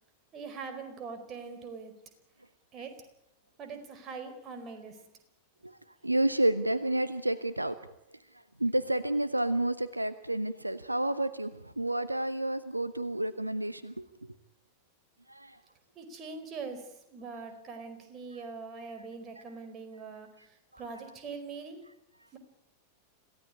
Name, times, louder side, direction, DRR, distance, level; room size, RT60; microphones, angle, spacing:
voice 1, 0.3-1.9 2.7-3.0 3.6-5.0 15.9-21.8 22.3-22.4, right 4 dB, 30° right, 7 dB, 4.8 m, -42 dB
voice 2, 6.0-7.7 8.6-14.0 15.3-15.6, right 1 dB, 85° right, 15 dB, 0.9 m, -30 dB
27.0 x 16.5 x 9.9 m, 0.83 s
figure-of-eight pair, 90°, 0 cm